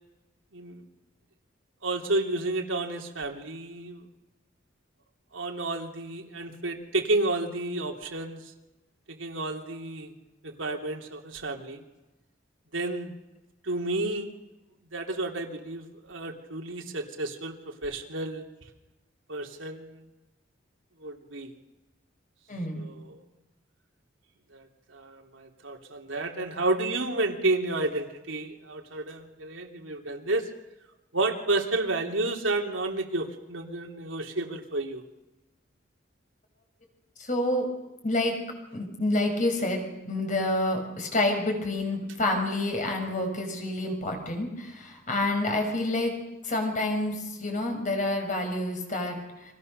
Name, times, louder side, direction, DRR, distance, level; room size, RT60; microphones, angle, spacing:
voice 1, 0.5-0.9 1.8-4.1 5.3-8.5 9.1-10.1 10.4-11.8 12.7-13.2 13.6-14.3 14.9-18.4 19.3-20.1 21.0-21.5 22.7-23.2 24.5-30.5 31.1-35.0, right 2 dB, 85° right, 2 dB, 3.1 m, -31 dB
voice 2, 22.5-22.9 37.2-37.7 38.0-38.4 38.7-46.2 46.4-49.2, left 1 dB, 40° left, 3 dB, 6.2 m, -28 dB
30.0 x 25.0 x 6.7 m, 1.0 s
head